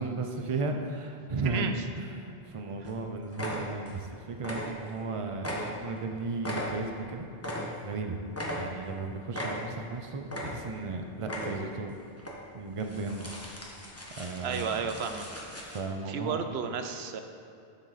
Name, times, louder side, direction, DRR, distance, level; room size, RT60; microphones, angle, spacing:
voice 1, 0.0-7.3 7.8-8.2 8.5-11.9 12.5-13.3 14.2-14.8 15.6-16.4, right 3 dB, 35° right, 4 dB, 0.7 m, -35 dB
sound 1, 2.4-2.5 2.8-3.0 3.3-4.1 4.3-5.1 5.4-8.0 8.3-9.0 9.3-9.9 10.2-10.9 11.2-11.8 12.2-12.3 12.8-15.8, equal, 15° left, 1.2 m, -38 dB
voice 2, 14.4-15.3 16.1-17.2, right 6 dB, 90° right, 7 dB, 0.9 m, -32 dB
10.5 x 7.5 x 4.1 m, 2.6 s
omnidirectional pair, 1.0 m